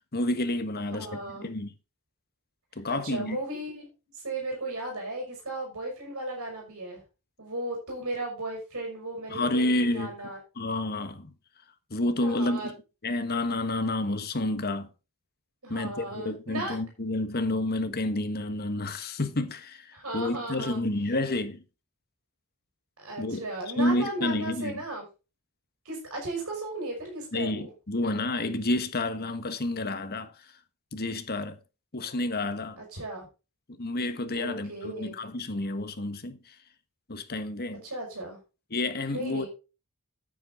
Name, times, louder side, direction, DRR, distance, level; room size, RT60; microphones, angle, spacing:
voice 1, 0.1-1.7 2.8-3.4 9.3-10.1 10.6-11.3 11.9-12.7 13.0-14.9 15.7-21.6 23.2-23.5 23.8-24.8 27.3-30.3 30.9-31.6 31.9-32.8 33.8-36.4 37.1-37.8 38.7-39.5, left 2 dB, 45° left, 1.5 m, -29 dB
voice 2, 0.9-1.5 2.9-7.0 7.4-10.4 12.2-12.7 15.6-16.8 19.9-20.8 23.0-25.1 25.8-27.7 32.8-33.3 34.3-35.2 37.8-38.4 39.1-39.5, right 2 dB, 70° right, 5.5 m, -36 dB
10.0 x 9.6 x 3.8 m
head